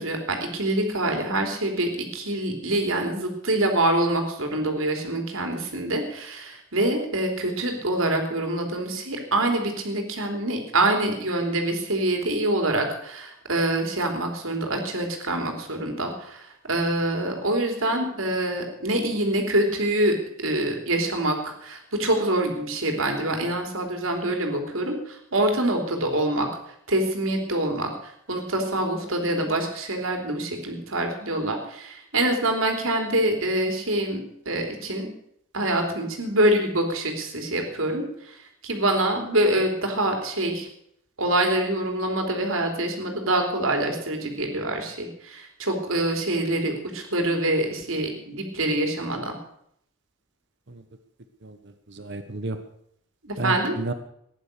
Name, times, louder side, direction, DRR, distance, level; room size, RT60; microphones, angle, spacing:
voice 1, 0.0-26.5 26.9-35.1 35.5-40.7 41.2-49.4 53.2-53.7, right 1 dB, 85° right, 3 dB, 3.4 m, -25 dB
voice 2, 51.4-52.6 53.4-53.9, right 2 dB, 60° right, 9 dB, 1.3 m, -32 dB
15.5 x 10.5 x 6.7 m, 0.70 s
head